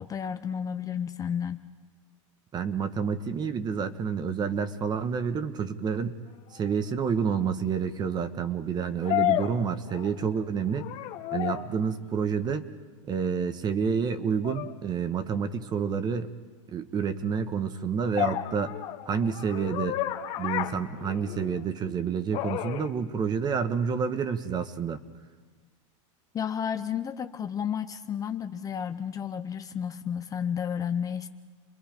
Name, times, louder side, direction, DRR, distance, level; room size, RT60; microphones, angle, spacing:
voice 1, 0.0-1.6 26.3-31.3, left 8 dB, 20° left, 9 dB, 0.7 m, -32 dB
voice 2, 2.5-6.2 6.5-10.9 11.3-12.7 13.1-16.3 16.7-18.7 19.1-20.0 20.4-25.0, right 6 dB, 25° right, 10 dB, 1.3 m, -29 dB
sound 1, 6.7-6.8 9.0-10.4 10.7-11.8 14.4-14.7 18.2-21.6 22.3-22.9, left 14 dB, 45° left, 1.6 m, -31 dB
29.5 x 21.5 x 5.2 m, 1.4 s
supercardioid pair, 125°, 16 cm